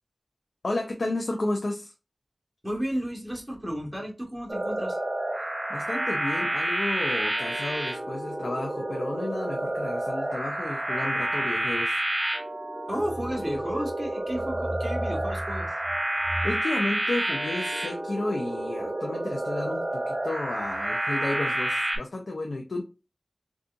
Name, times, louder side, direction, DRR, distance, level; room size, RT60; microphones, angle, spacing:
voice 1, 0.6-1.9 5.7-12.0 16.4-22.8, left 2 dB, 80° left, 1 dB, 0.5 m, -32 dB
voice 2, 2.6-5.0 12.9-15.7 16.2-16.5, equal, 15° right, 0 dB, 1.3 m, -32 dB
sound 1, 4.5-22.0, right 1 dB, 40° right, 1.1 m, -29 dB
3.8 x 2.4 x 2.5 m, 0.29 s
wide cardioid pair, 50°, 0 cm